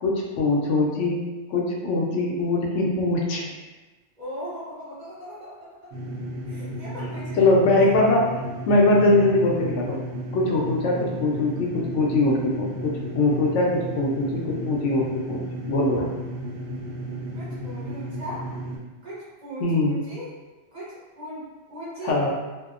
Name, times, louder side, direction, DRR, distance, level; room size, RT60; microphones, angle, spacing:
voice 1, 0.0-1.2 1.5-3.5 7.4-8.4 8.7-10.0 10.3-15.4 15.7-16.1 19.6-20.0 22.0-22.3, left 2 dB, 80° left, -2 dB, 0.9 m, -22 dB
voice 2, 4.2-5.6 5.8-5.9 6.5-7.4 17.3-18.4 19.0-20.3 20.7-22.3, equal, 40° right, -9 dB, 0.9 m, -38 dB
sound 1, 5.9-18.8, equal, 70° right, 0.8 m, -34 dB
2.7 x 2.0 x 2.4 m, 1.2 s
omnidirectional pair, 1.2 m